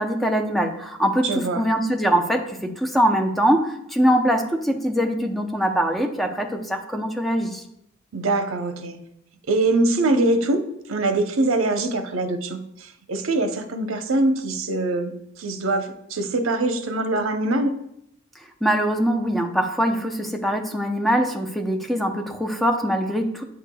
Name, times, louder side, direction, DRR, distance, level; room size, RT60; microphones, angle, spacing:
voice 1, 0.0-7.6 18.6-23.4, equal, ahead, 3 dB, 0.6 m, -22 dB
voice 2, 1.2-1.6 8.1-9.0 9.5-15.1 15.4-17.7, right 2 dB, 80° right, 7 dB, 0.7 m, -23 dB
8.8 x 6.5 x 2.2 m, 0.77 s
head